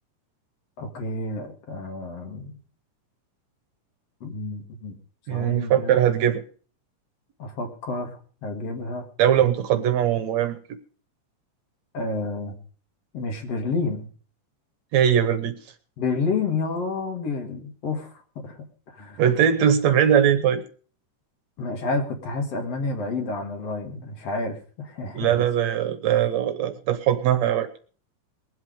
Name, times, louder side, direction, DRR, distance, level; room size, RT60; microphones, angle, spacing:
voice 1, 0.8-2.6 4.2-4.9 5.3-6.0 7.4-9.1 11.9-12.6 13.1-14.1 16.0-18.6 18.9-19.2 21.6-25.4, left 3 dB, 55° left, 4 dB, 2.7 m, -30 dB
voice 2, 5.3-6.4 9.2-10.6 14.9-15.6 19.2-20.6 25.1-27.7, right 9 dB, 70° right, 10 dB, 2.0 m, -21 dB
21.5 x 8.0 x 5.0 m, 0.41 s
omnidirectional pair, 3.6 m